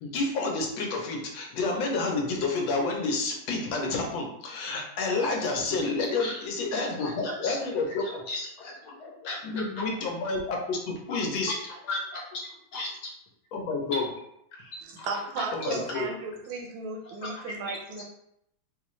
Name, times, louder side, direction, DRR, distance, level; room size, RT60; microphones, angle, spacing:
voice 1, 0.0-8.2 9.4-11.5 13.5-14.0 14.6-14.7 15.5-16.1, left 3 dB, 80° left, 0 dB, 1.5 m, -29 dB
voice 2, 6.7-7.7 8.0-10.0 11.1-11.2 11.5-12.4 12.7-13.1 13.9-14.0 15.0-16.1 17.0-18.0, left 2 dB, 65° left, -3 dB, 1.4 m, -37 dB
voice 3, 15.1-18.0, right 4 dB, 85° right, 0 dB, 1.5 m, -35 dB
4.1 x 2.4 x 3.1 m, 0.77 s
omnidirectional pair, 2.1 m